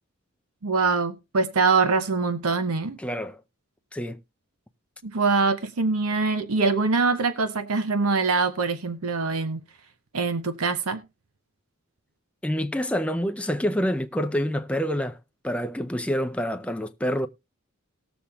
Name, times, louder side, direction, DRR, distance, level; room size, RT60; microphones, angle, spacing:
voice 1, 0.6-3.0 5.0-9.6 10.1-11.0, right 4 dB, 90° right, 0.8 m, -24 dB
voice 2, 3.0-3.4 3.9-4.2 12.4-15.2 15.4-17.3, equal, 5° left, 0.5 m, -27 dB
19.0 x 7.0 x 2.3 m
head